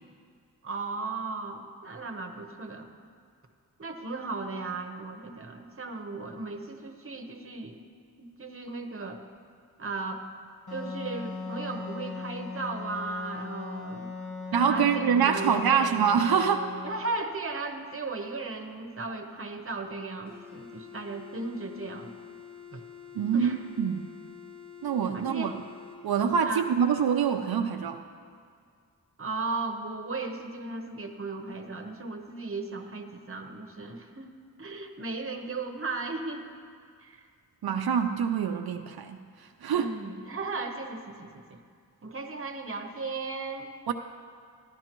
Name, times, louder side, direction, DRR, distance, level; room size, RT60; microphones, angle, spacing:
voice 1, 0.6-2.9 3.8-7.8 8.2-9.2 9.8-10.2 10.7-14.1 14.6-16.0 16.8-22.1 22.7-22.8 23.3-23.6 25.1-25.6 26.4-26.6 29.2-36.5 37.0-37.2 39.7-41.6 42.0-43.7, right 3 dB, 35° right, 4 dB, 0.9 m, -36 dB
Wind instrument woodwind instrument, 10.7-17.1, left 4 dB, 55° left, 1.2 m, -38 dB
voice 2, 14.5-16.7 23.1-24.0 24.8-25.5 26.0-28.0 37.6-39.9 43.9-44.0, right 7 dB, 80° right, 5 dB, 0.5 m, -25 dB
sound 1, 20.2-26.0, left 8 dB, 25° left, 2.4 m, -47 dB
14.0 x 11.5 x 3.0 m, 2.2 s
wide cardioid pair, 100°, 36 cm